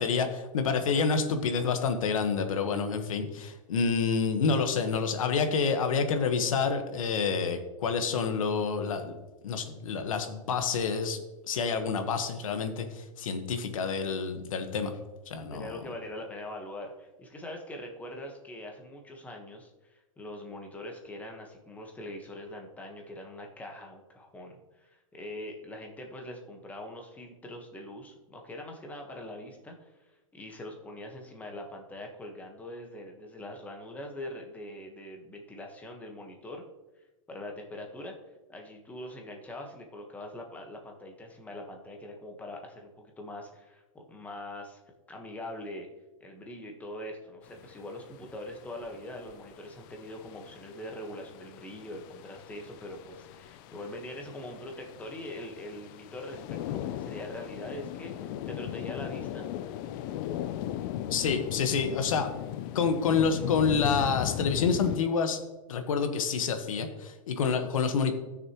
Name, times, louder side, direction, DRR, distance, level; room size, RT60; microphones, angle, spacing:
voice 1, 0.0-9.2 9.4-11.2 11.5-14.9 15.3-15.7 61.1-62.3 62.7-65.4 65.7-68.1, left 5 dB, 80° left, 7 dB, 1.4 m, -28 dB
voice 2, 15.5-29.9 30.3-36.6 37.3-38.1 38.5-44.8 45.1-45.9 46.2-59.5, left 1 dB, 10° left, 2 dB, 1.3 m, -42 dB
sound 1, 47.5-65.0, left 11 dB, 40° left, 0.5 m, -38 dB
15.5 x 6.7 x 3.1 m, 1.1 s
supercardioid pair, 150°, 17 cm